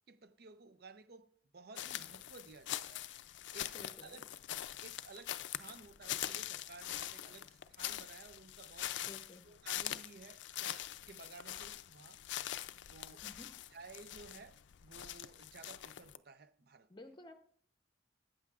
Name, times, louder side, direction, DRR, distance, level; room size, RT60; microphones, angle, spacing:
voice 1, 0.1-4.3 4.8-9.1 9.4-12.2 12.9-13.2 13.7-16.9, right 4 dB, 60° right, 0.6 m, -55 dB
sound 1, 1.8-16.2, left 12 dB, 75° left, 0.4 m, -43 dB
voice 2, 3.7-4.1 9.0-9.4 13.2-13.5 16.9-17.3, left 1 dB, 25° left, 0.8 m, -53 dB
14.0 x 8.7 x 2.4 m
head